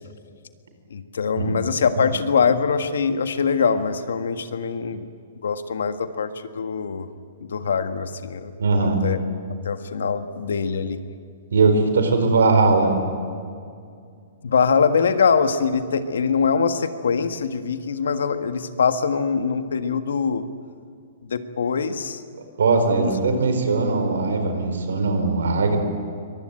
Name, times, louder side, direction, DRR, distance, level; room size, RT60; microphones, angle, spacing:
voice 1, 0.9-5.1 5.4-7.1 7.4-8.5 8.8-9.2 9.6-11.0 14.4-20.4 21.2-22.2 23.0-23.4, left 5 dB, 85° left, 9 dB, 1.6 m, -23 dB
voice 2, 8.6-9.0 11.5-13.0 22.6-25.8, right 3 dB, 90° right, 6 dB, 4.5 m, -20 dB
23.5 x 20.0 x 9.1 m, 2.3 s
hypercardioid pair, 145°, 0 cm